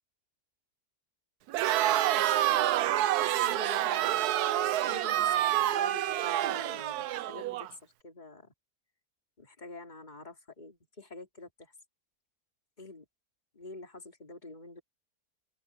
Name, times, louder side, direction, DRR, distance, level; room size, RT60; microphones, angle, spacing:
Crowd, 1.5-7.7, right 13 dB, 75° right, 1.1 m, -28 dB
voice 1, 3.2-8.5 9.4-11.7 12.8-13.1 13.5-14.8, left 2 dB, 25° left, 3.1 m, -47 dB
open air
omnidirectional pair, 1.7 m